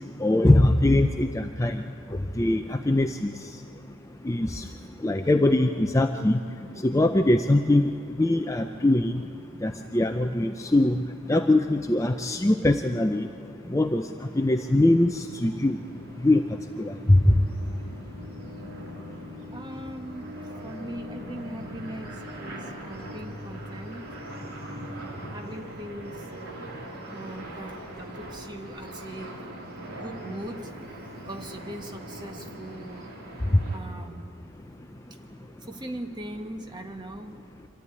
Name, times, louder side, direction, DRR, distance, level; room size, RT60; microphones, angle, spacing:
voice 1, 0.2-1.8 2.4-3.3 4.3-4.7 5.0-6.4 6.8-7.9 8.2-9.1 9.6-11.0 11.3-13.3 13.7-14.0 14.4-15.8 16.2-16.4 16.8-17.3, left 1 dB, 15° left, 6 dB, 0.4 m, -22 dB
sound 1, 14.2-33.8, equal, 85° right, 3.5 m, -41 dB
voice 2, 19.5-24.1 25.3-26.3 27.1-29.5 29.9-33.1 33.7-34.3 35.6-37.4, right 1 dB, 20° right, 4 dB, 1.3 m, -40 dB
25.5 x 14.0 x 9.7 m, 2.6 s
head